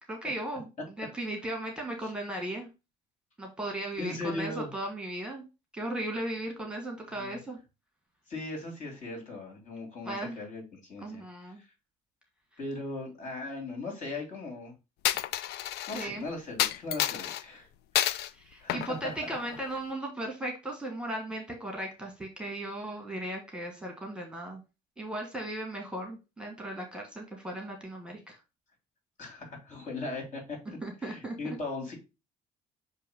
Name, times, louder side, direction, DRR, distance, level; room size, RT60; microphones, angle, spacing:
voice 1, 0.1-0.7 1.0-2.7 3.4-5.4 5.7-7.6 10.0-10.4 11.0-11.6 15.9-16.2 18.3-24.6 25.0-28.4 30.8-31.6, right 1 dB, 5° right, 2 dB, 1.5 m, -36 dB
voice 2, 4.0-4.7 7.2-7.4 8.3-11.2 12.6-14.7 15.9-17.7 18.6-19.0 29.2-30.4 30.7-31.9, left 2 dB, 45° left, 1 dB, 3.1 m, -38 dB
Coin (dropping), 15.0-16.1 16.6-17.4 18.0-18.3 18.7-19.8, left 12 dB, 75° left, 0.4 m, -30 dB
6.9 x 2.8 x 5.1 m, 0.27 s
cardioid pair, 110°, 17 cm